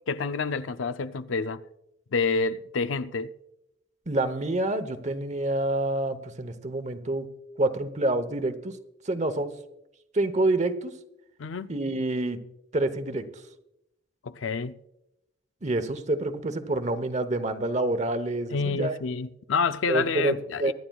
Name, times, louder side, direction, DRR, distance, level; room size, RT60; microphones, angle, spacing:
voice 1, 0.1-1.6 2.1-3.3 11.4-11.7 14.2-14.7 18.5-20.7, left 4 dB, 85° left, 0.5 m, -28 dB
voice 2, 4.1-7.3 7.6-8.8 9.0-9.5 10.1-10.9 11.7-12.4 12.7-13.3 15.6-19.0 19.9-20.7, right 2 dB, 35° right, 0.9 m, -27 dB
24.0 x 11.5 x 2.3 m
head